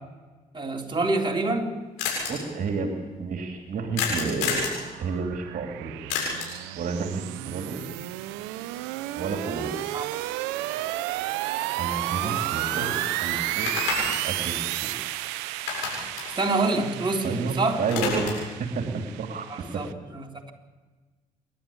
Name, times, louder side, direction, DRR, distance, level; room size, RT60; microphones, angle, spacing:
voice 1, 0.5-1.7 9.9-10.1 12.1-12.4 16.4-17.8 19.5-20.5, right 2 dB, 25° right, 0 dB, 4.0 m, -27 dB
sound 1, 1.3-1.4 1.6-1.7 2.0-2.3 4.0-4.8 6.1-6.6 10.8-10.9 11.3-12.5 12.8-12.9 13.5-15.3 15.5-17.4 17.7-18.5, left 5 dB, 85° left, 7.6 m, -30 dB
voice 2, 2.3-4.7 5.0-5.9 6.7-7.8 9.2-9.7 11.8-14.9 17.2-19.5, right 4 dB, 50° right, 3 dB, 3.0 m, -31 dB
sound 2, 3.9-19.9, right 16 dB, 80° right, 0.8 m, -32 dB
29.0 x 12.5 x 8.8 m, 1.3 s
hypercardioid pair, 50°, 18 cm